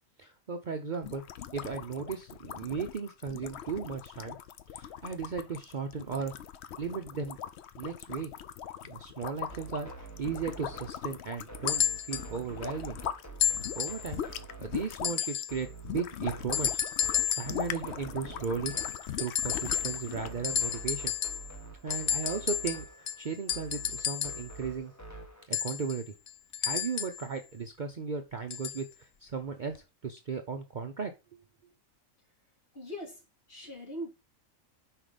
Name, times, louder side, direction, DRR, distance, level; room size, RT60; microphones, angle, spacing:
voice 1, 0.2-1.2 1.5-4.4 4.7-6.3 6.8-7.4 7.8-8.3 8.8-13.0 13.5-14.2 14.6-18.8 19.2-21.1 21.8-24.9 25.5-26.1 26.6-29.8 30.0-31.1, right 5 dB, 45° right, 0.7 m, -36 dB
sound 1, 1.0-13.2 13.5-20.4, left 10 dB, 65° left, 0.8 m, -41 dB
sound 2, 9.5-25.5, right 3 dB, 15° left, 0.9 m, -47 dB
sound 3, 11.7-12.3 13.4-14.1 15.0-15.6 16.5-17.6 18.7-20.2 20.4-21.5 21.9-24.5 25.5-27.3 28.5-28.8 29.8-29.9, left 9 dB, 85° left, 0.3 m, -31 dB
voice 2, 32.7-33.2 33.5-34.1, equal, 45° left, 2.6 m, -40 dB
5.9 x 4.9 x 5.0 m
omnidirectional pair, 1.4 m